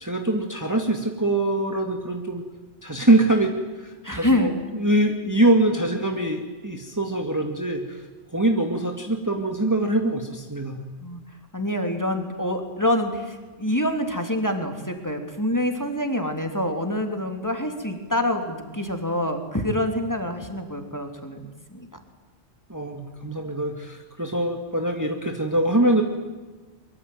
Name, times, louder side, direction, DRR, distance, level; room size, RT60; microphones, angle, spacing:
voice 1, 0.0-2.4 2.8-8.0 8.3-10.8 22.7-26.0, right 1 dB, 15° right, 3 dB, 2.2 m, -23 dB
voice 2, 4.0-4.6 11.0-11.2 11.5-21.9, left 1 dB, 15° left, 5 dB, 3.2 m, -26 dB
24.0 x 23.5 x 9.3 m, 1.3 s
omnidirectional pair, 1.2 m